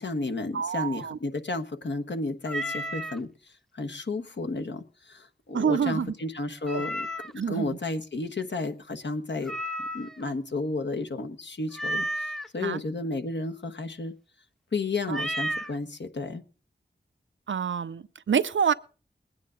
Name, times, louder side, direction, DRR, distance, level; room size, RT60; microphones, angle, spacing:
voice 1, 0.0-7.1 7.5-9.6 9.9-14.1 14.7-16.4, left 2 dB, 70° left, 1.2 m, -32 dB
voice 2, 0.5-1.2 5.5-6.1 6.7-6.8 7.4-7.8 12.6-12.8 15.1-15.2 17.5-18.7, right 7 dB, 90° right, 0.6 m, -27 dB
Meow, 2.4-3.2 6.6-7.4 9.4-10.2 11.7-12.5 15.1-15.7, equal, ahead, 0.7 m, -32 dB
20.5 x 9.5 x 3.7 m
wide cardioid pair, 50°, 19 cm